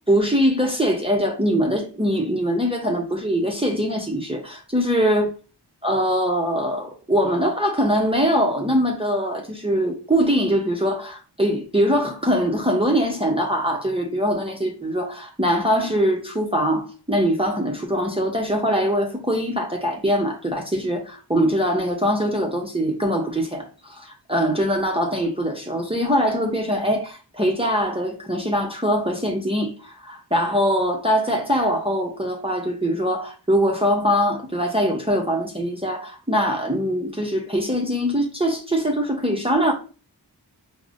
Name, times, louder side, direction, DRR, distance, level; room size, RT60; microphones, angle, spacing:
voice 1, 0.1-5.3 5.8-39.7, equal, 15° right, 0.6 m, -22 dB
4.7 x 2.0 x 2.5 m
wide cardioid pair, 55°, 41 cm